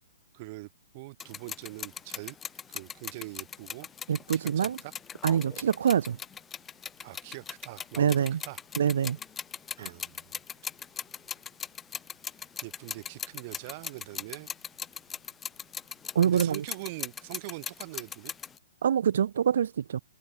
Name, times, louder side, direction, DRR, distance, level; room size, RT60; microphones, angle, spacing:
voice 1, 0.3-2.4 2.7-3.9 4.3-4.9 7.0-8.6 9.8-10.4 12.6-14.5 16.2-18.3, right 23 dB, 45° right, 6.1 m, -43 dB
sound 1, 1.2-18.6, left 7 dB, 15° left, 1.7 m, -40 dB
voice 2, 4.1-4.8 5.2-6.2 8.0-8.4 8.8-9.2 9.8-9.9 16.1-16.6 18.8-20.0, right 8 dB, 70° right, 1.4 m, -25 dB
hypercardioid pair, 125°, 0 cm